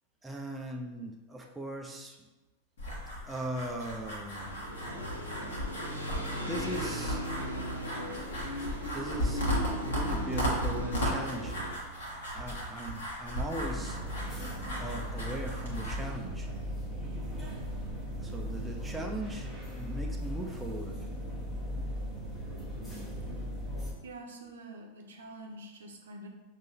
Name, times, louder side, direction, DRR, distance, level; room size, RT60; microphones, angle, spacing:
voice 1, 0.2-2.3 3.3-4.5 6.5-7.2 8.9-9.4 9.7-11.7 12.3-14.0 14.8-16.5 18.2-21.0, right 1 dB, 5° right, 0 dB, 0.5 m, -39 dB
sound 1, 2.8-16.0, equal, 60° left, 1.4 m, -36 dB
sound 2, 4.4-11.8, equal, 90° left, 0.7 m, -38 dB
sound 3, 13.6-23.9, equal, 10° left, 1.1 m, -37 dB
voice 2, 24.0-26.3, right 2 dB, 65° right, 1 dB, 0.7 m, -46 dB
6.1 x 2.6 x 2.8 m, 1.1 s
figure-of-eight pair, 90°, 0 cm